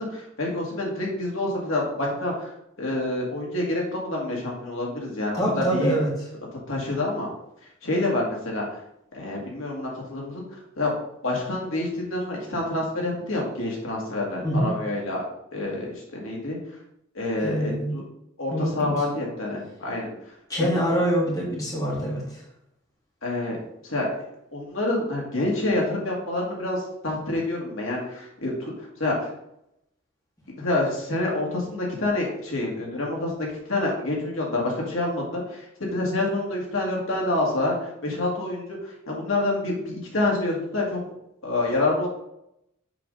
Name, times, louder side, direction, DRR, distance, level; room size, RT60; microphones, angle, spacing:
voice 1, 0.0-2.5 2.8-6.0 6.7-7.3 7.8-8.7 9.1-10.9 11.2-15.3 15.5-16.6 17.1-18.0 18.4-20.1 20.7-20.9 23.2-23.6 23.8-24.1 24.5-29.3 30.5-35.6 35.9-41.0 41.4-42.1, left 2 dB, 85° left, -2 dB, 2.1 m, -27 dB
voice 2, 5.3-6.1 14.4-14.7 17.4-18.0 18.5-19.0 20.5-22.4, right 1 dB, 15° left, -4 dB, 2.1 m, -25 dB
7.4 x 3.9 x 5.4 m, 0.80 s
head